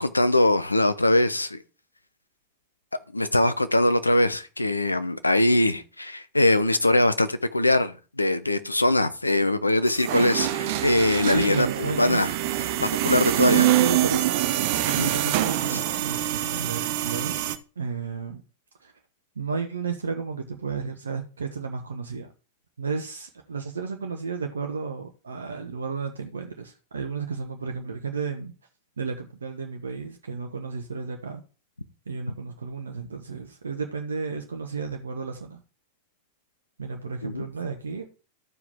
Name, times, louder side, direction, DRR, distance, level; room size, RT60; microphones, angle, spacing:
voice 1, 0.0-1.6 3.1-12.3 12.8-13.7 15.0-15.1 15.7-15.8 37.2-37.4, left 1 dB, 85° left, 0.7 m, -22 dB
sound 1, 9.9-17.6, right 14 dB, 50° right, 0.8 m, -25 dB
voice 2, 11.3-12.3 13.3-14.3 15.0-17.4 17.8-18.4 18.8-18.9 19.4-22.3 22.8-28.5 29.0-31.4 32.1-35.6 36.8-38.1, right 5 dB, 70° right, 1.0 m, -32 dB
13.5 x 4.8 x 3.5 m
figure-of-eight pair, 90°, 0 cm